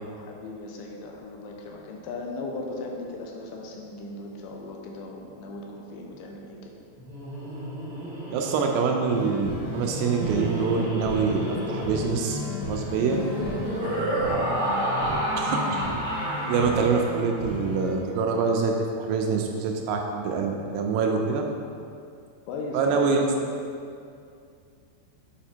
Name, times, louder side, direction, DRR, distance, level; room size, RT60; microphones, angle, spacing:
voice 1, 0.2-6.7 14.3-14.6 22.5-23.3, left 2 dB, 80° left, 0 dB, 2.9 m, -37 dB
Laughter, 7.0-17.5, right 1 dB, 50° right, 1.2 m, -31 dB
voice 2, 8.3-12.4 12.7-13.2 15.4-15.8 16.5-21.4 22.7-23.2, right 5 dB, 85° right, 2 dB, 2.4 m, -25 dB
sound 1, 9.1-17.9, left 1 dB, 65° left, 3.4 m, -34 dB
8.1 x 4.9 x 4.4 m, 2.4 s
omnidirectional pair, 5.2 m